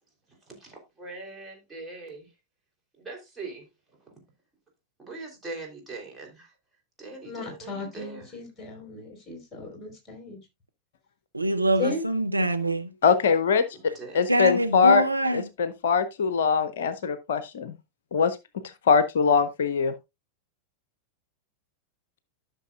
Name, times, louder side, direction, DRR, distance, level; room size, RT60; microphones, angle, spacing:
voice 1, 0.5-2.3 3.0-3.7 4.1-4.2 5.0-6.5 7.0-8.3 13.9-14.2, right 3 dB, 10° right, 3.3 m, -41 dB
voice 2, 7.2-10.4 11.8-12.0, left 4 dB, 15° left, 4.3 m, -35 dB
voice 3, 11.3-12.9 14.3-15.5, right 1 dB, 85° right, 0.7 m, -24 dB
voice 4, 13.0-13.6 14.1-15.1 15.3-17.7 18.1-18.4 18.9-19.9, left 6 dB, 60° left, 0.6 m, -22 dB
12.5 x 6.2 x 2.4 m
figure-of-eight pair, 90°, 0 cm